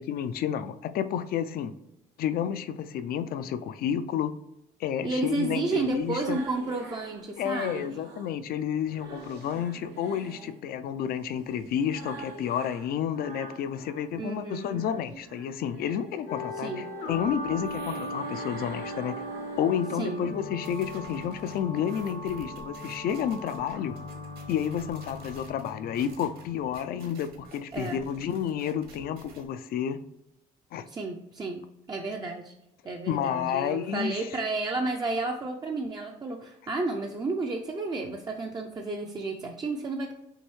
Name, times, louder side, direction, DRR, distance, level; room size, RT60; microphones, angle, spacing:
voice 1, 0.0-1.7 2.2-4.3 4.8-6.4 7.4-19.2 19.6-24.0 24.5-30.0 30.7-30.8 33.1-34.3, left 9 dB, 60° left, 11 dB, 0.4 m, -30 dB
sound 1, 4.9-8.4 8.7-14.1 14.5-20.4, right 4 dB, 80° right, 0.9 m, -46 dB
voice 2, 5.0-7.8 14.2-14.8 16.6-16.9 20.0-20.2 27.7-28.0 30.9-32.5 32.8-40.1, right 3 dB, 25° right, 1 dB, 0.5 m, -32 dB
sound 2, 16.3-27.3, left 1 dB, 85° left, 1.1 m, -39 dB
sound 3, 20.6-29.4, right 4 dB, 60° right, 1.3 m, -51 dB
6.3 x 2.7 x 3.1 m, 0.85 s
cardioid pair, 110°, 17 cm